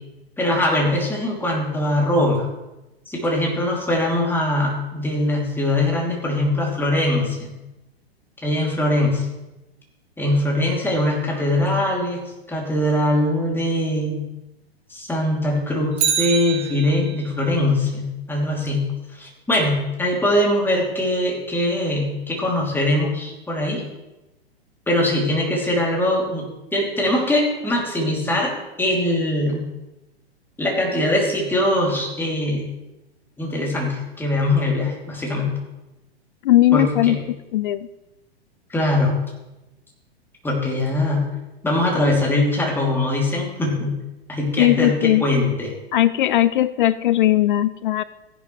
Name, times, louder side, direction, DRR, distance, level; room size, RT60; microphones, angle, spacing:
voice 1, 0.4-2.5 3.1-7.5 8.4-9.3 10.2-12.2 12.5-14.2 14.9-18.9 19.1-23.8 24.9-26.5 26.7-28.5 28.8-29.7 30.6-32.6 33.4-35.6 36.7-37.2 38.7-39.1 40.4-41.2 41.6-43.9 44.3-45.7, left 1 dB, 5° left, -2 dB, 2.9 m, -22 dB
Bicycle, 15.9-17.3 25.6-25.7, right 9 dB, 45° right, 2.0 m, -25 dB
voice 2, 36.4-37.2 37.5-37.9 44.6-45.2 45.9-48.0, left 14 dB, 55° left, 16 dB, 0.4 m, -18 dB
15.0 x 10.5 x 3.3 m, 1.0 s
figure-of-eight pair, 105°, 31 cm